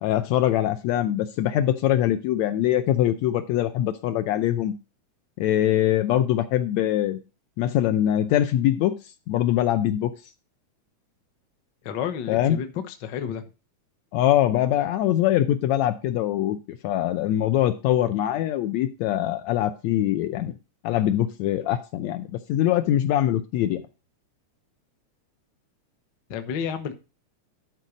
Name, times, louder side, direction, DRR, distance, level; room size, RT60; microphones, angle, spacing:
voice 1, 0.0-4.7 5.4-7.2 7.6-8.9 9.3-10.1 12.3-12.6 14.1-20.5 20.8-23.8, left 12 dB, 75° left, 10 dB, 1.7 m, -23 dB
voice 2, 11.8-13.4 26.3-26.9, left 8 dB, 60° left, 8 dB, 1.1 m, -31 dB
11.5 x 4.6 x 5.0 m, 0.30 s
omnidirectional pair, 3.5 m